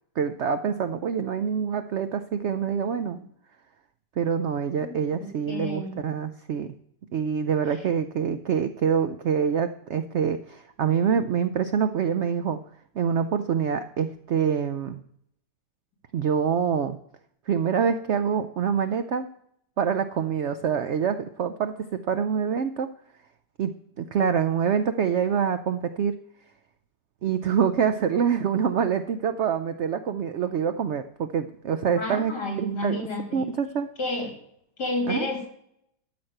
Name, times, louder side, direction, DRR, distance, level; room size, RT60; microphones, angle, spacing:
voice 1, 0.2-3.2 4.2-6.7 7.1-12.6 12.9-15.0 16.1-17.0 17.5-19.3 19.8-22.9 23.6-26.2 27.2-32.3 32.6-33.0 33.3-33.9 35.1-35.3, right 7 dB, 75° right, 10 dB, 0.6 m, -26 dB
voice 2, 4.8-6.0 32.0-33.4 34.0-34.4 34.8-35.5, left 1 dB, 70° left, 2 dB, 3.4 m, -31 dB
13.5 x 6.1 x 6.5 m, 0.72 s
omnidirectional pair, 1.9 m